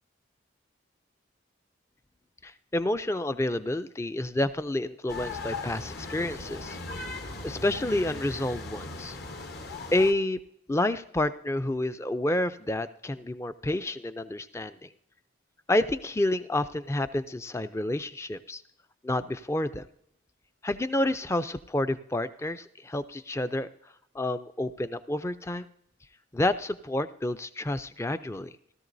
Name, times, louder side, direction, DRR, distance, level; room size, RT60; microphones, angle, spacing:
voice 1, 2.4-6.8 7.4-9.2 9.9-10.4 10.7-14.9 15.7-18.6 19.0-19.9 20.6-23.7 24.1-25.7 26.3-28.5, left 1 dB, 15° left, 12 dB, 0.4 m, -29 dB
sound 1, 5.1-10.1, left 3 dB, 55° left, 1.1 m, -38 dB
16.5 x 13.5 x 2.7 m, 0.73 s
head